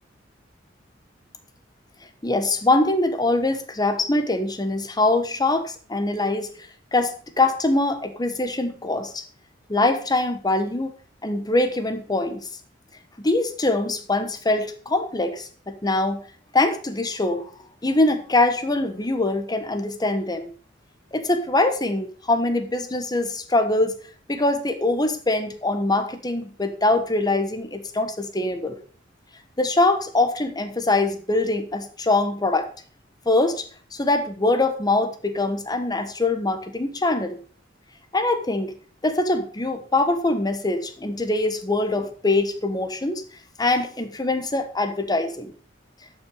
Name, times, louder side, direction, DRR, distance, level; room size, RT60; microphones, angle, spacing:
voice 1, 2.2-6.5 6.9-9.2 9.7-10.9 11.2-12.5 13.2-16.2 16.5-17.5 17.8-20.5 21.1-23.9 24.3-28.8 29.6-32.7 33.3-37.4 38.1-38.7 39.0-43.2 43.6-45.5, left 2 dB, 20° left, 8 dB, 1.2 m, -23 dB
12.0 x 5.8 x 5.1 m, 0.42 s
head